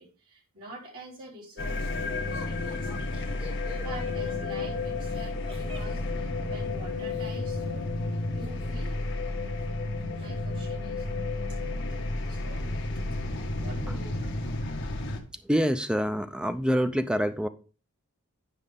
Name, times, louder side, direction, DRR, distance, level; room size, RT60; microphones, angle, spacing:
voice 1, 0.0-3.1 3.8-7.9 8.3-9.0 9.2-9.3 10.2-11.1 11.5-11.6 11.9-12.7 13.6-14.4, right 1 dB, 70° right, 3.6 m, -46 dB
sound 1, 1.6-15.2, left 2 dB, 55° left, 1.3 m, -32 dB
Laughter, 2.3-7.4 8.4-9.3 9.6-9.7 10.0-10.5, left 1 dB, 25° right, 1.2 m, -48 dB
voice 2, 15.4-17.5, equal, 5° right, 0.4 m, -26 dB
9.9 x 5.4 x 3.5 m
head